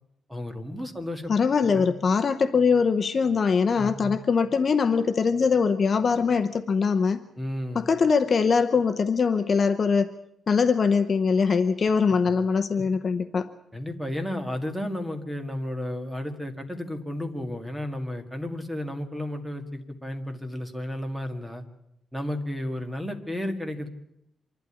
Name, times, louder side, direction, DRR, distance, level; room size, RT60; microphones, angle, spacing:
voice 1, 0.3-1.9 3.8-4.2 7.4-7.9 12.2-12.4 13.7-21.6 22.1-23.9, left 1 dB, 5° right, 5 dB, 1.8 m, -33 dB
voice 2, 1.3-7.2 7.7-10.1 10.5-13.5, left 5 dB, 35° left, 8 dB, 0.8 m, -22 dB
25.5 x 12.0 x 9.9 m, 0.80 s
wide cardioid pair, 165°, 0 cm